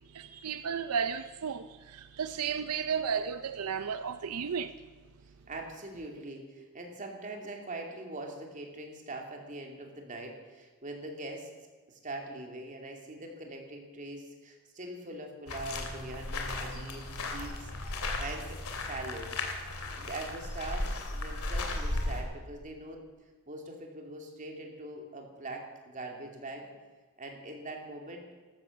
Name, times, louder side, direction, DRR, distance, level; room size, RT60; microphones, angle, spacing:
voice 1, 0.1-4.7, right 6 dB, 80° right, 0.6 m, -33 dB
voice 2, 5.5-11.5 11.9-19.3 20.0-23.0 23.5-26.7 27.2-28.3, right 2 dB, 35° right, 2.8 m, -42 dB
sound 1, 15.5-22.2, left 2 dB, 70° left, 2.8 m, -35 dB
14.0 x 13.5 x 7.3 m
head